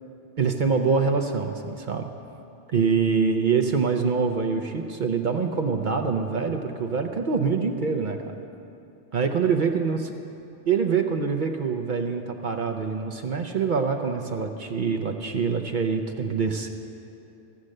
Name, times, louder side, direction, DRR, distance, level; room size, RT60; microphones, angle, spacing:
voice 1, 0.4-2.1 2.7-8.4 9.1-10.0 10.7-16.7, right 5 dB, 50° right, 5 dB, 0.7 m, -25 dB
14.5 x 7.4 x 6.5 m, 2.8 s
omnidirectional pair, 1.3 m